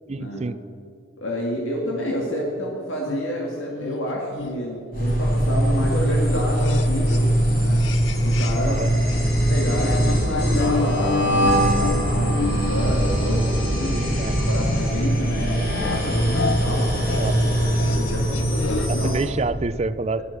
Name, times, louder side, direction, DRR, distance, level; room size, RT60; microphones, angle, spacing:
voice 1, 0.1-0.6 8.7-8.9 13.9-14.4 17.2-17.4 18.9-20.2, right 3 dB, 35° right, 14 dB, 0.4 m, -27 dB
voice 2, 1.2-7.8 8.2-8.8 9.5-14.0 14.3-19.2, equal, 85° left, -2 dB, 2.3 m, -29 dB
sound 1, 3.1-8.8 9.1-19.1, left 4 dB, 70° left, 0.6 m, -32 dB
sound 2, 4.9-19.3, right 1 dB, 50° left, 4.6 m, -21 dB
15.5 x 13.0 x 6.7 m, 2.4 s
head